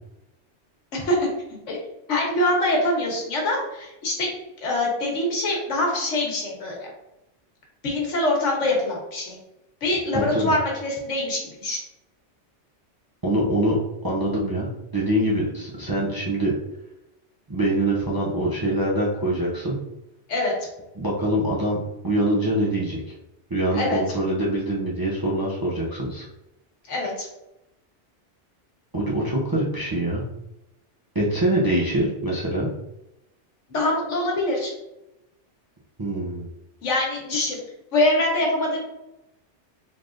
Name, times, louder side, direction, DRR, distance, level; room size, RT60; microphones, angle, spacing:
voice 1, 0.9-1.3 1.7-1.8 2.1-4.3 4.6-6.9 7.8-9.4 9.8-11.8 20.3-20.5 23.7-24.0 26.9-27.3 33.7-34.7 36.8-37.6 37.9-38.8, left 1 dB, 90° left, -2 dB, 1.4 m, -24 dB
voice 2, 10.1-10.5 13.2-16.5 17.5-19.8 21.0-21.8 22.0-23.1 23.5-26.3 28.9-30.2 31.1-32.7 36.0-36.5, right 1 dB, 30° right, -6 dB, 0.4 m, -24 dB
3.9 x 3.2 x 2.5 m, 0.92 s
omnidirectional pair, 1.2 m